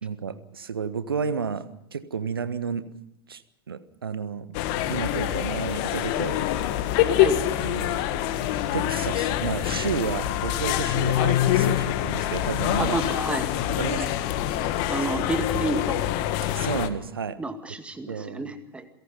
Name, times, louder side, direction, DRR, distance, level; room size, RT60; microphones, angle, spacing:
voice 1, 0.0-2.9 3.3-3.4 3.7-4.5 4.9-6.4 7.6-8.0 8.7-13.0 13.7-14.1 14.4-14.7 15.0-15.1 16.5-17.4 18.1-18.5, right 6 dB, 70° right, 13 dB, 1.5 m, -31 dB
sound 1, 4.5-16.9, left 12 dB, 45° left, 1.6 m, -25 dB
voice 2, 12.8-13.5 14.0-14.1 14.9-16.1 17.4-18.8, right 2 dB, 10° right, 8 dB, 2.1 m, -30 dB
29.0 x 17.5 x 5.6 m, 0.81 s
figure-of-eight pair, 90°, 13 cm